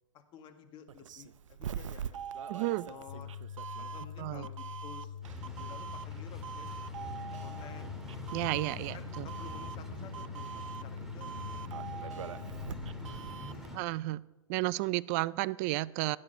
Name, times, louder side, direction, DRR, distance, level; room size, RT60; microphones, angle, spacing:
voice 1, 0.1-2.4 2.7-3.3 3.8-6.7 7.0-8.2 8.9-10.5 10.8-13.1 13.4-13.9, left 8 dB, 30° left, 6 dB, 1.6 m, -53 dB
Doorbell, 0.9-13.7, right 8 dB, 75° right, 0.6 m, -43 dB
voice 2, 2.5-2.9 4.2-4.5 8.3-9.3 13.7-14.2 14.5-16.2, right 19 dB, 30° right, 20 dB, 0.4 m, -32 dB
sound 1, 3.1-13.1, left 8 dB, 50° left, 1.0 m, -44 dB
sound 2, 5.2-13.8, left 1 dB, 5° right, 1.9 m, -45 dB
16.0 x 9.8 x 5.6 m, 1.1 s
hypercardioid pair, 135°, 16 cm